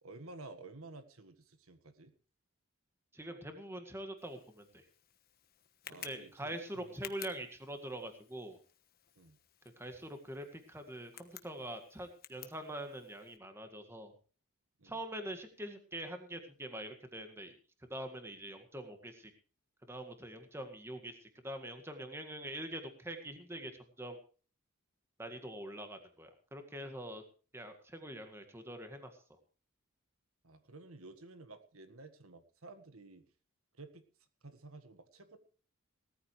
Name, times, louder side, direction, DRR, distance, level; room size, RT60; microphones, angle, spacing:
voice 1, 0.0-2.1 5.9-7.0 7.2-7.3 9.1-9.4 14.8-15.0 30.4-33.2 33.7-34.0 34.4-35.4, right 2 dB, 75° right, 10 dB, 1.7 m, -52 dB
voice 2, 3.1-4.8 5.9-8.6 9.8-14.1 14.8-17.5 17.9-19.3 19.9-21.1 21.4-23.7 24.0-24.2 25.2-27.2 27.5-29.2, right 1 dB, 10° right, 7 dB, 1.9 m, -44 dB
Tick, 4.2-13.4, left 10 dB, 45° left, 1.2 m, -55 dB
18.5 x 14.0 x 3.3 m, 0.39 s
head